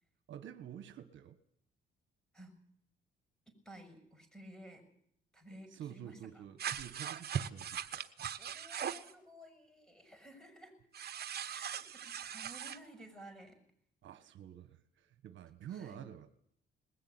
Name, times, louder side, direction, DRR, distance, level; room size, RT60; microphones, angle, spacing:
voice 1, 0.3-1.4 5.7-8.0 14.0-16.3, right 10 dB, 70° right, 1.4 m, -49 dB
voice 2, 3.5-4.8 5.3-6.4 8.4-10.8 11.4-13.6 15.7-16.0, right 1 dB, 5° left, 6.8 m, -54 dB
sound 1, 6.6-9.1 10.9-12.8, right 9 dB, 55° right, 1.3 m, -40 dB
20.5 x 15.5 x 9.7 m
cardioid pair, 90°, 20 cm